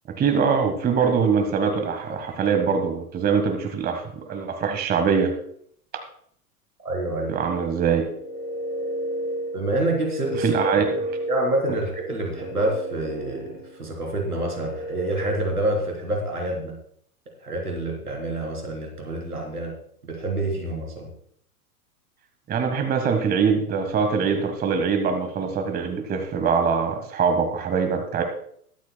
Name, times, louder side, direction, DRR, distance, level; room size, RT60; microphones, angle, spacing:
voice 1, 0.2-5.3 7.3-8.0 10.4-10.9 22.5-28.2, right 6 dB, 20° right, 6 dB, 1.4 m, -23 dB
voice 2, 6.8-7.4 9.5-10.7 11.3-13.5 13.8-16.7 17.4-19.7 20.0-21.1, right 1 dB, 85° right, 0 dB, 3.8 m, -27 dB
sound 1, 8.0-15.8, right 1 dB, 85° left, 5.0 m, -32 dB
22.0 x 8.2 x 2.3 m, 0.63 s
figure-of-eight pair, 100°, 45 cm